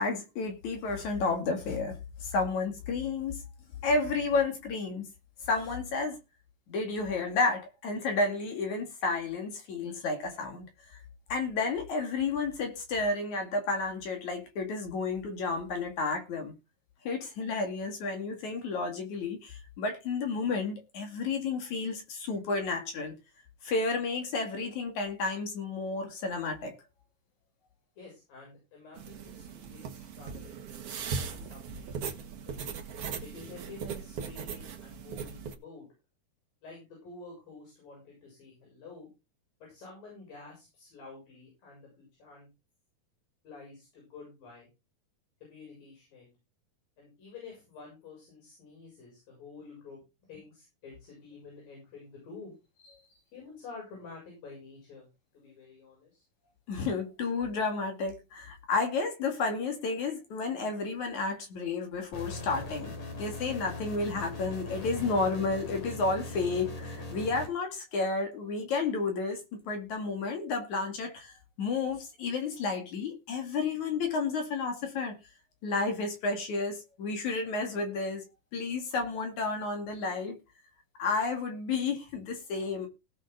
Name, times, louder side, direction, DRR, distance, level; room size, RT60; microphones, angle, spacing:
voice 1, 0.0-3.4 3.8-5.0 5.5-6.2 6.7-10.7 11.3-16.5 17.0-23.1 23.6-26.8 56.7-71.3 71.6-75.2 75.6-78.2 78.5-80.4 81.0-82.9, left 3 dB, 60° left, 3.4 m, -31 dB
voice 2, 28.0-32.6 33.2-35.9 36.6-39.1 39.6-42.5 43.4-44.7 45.4-46.3 47.0-52.6 53.3-55.1 55.3-56.2, left 4 dB, 75° left, 8.7 m, -49 dB
sound 1, 29.0-35.5, right 6 dB, 55° right, 2.0 m, -39 dB
sound 2, 62.1-67.5, left 2 dB, 45° left, 4.1 m, -40 dB
18.0 x 6.5 x 3.9 m
omnidirectional pair, 4.0 m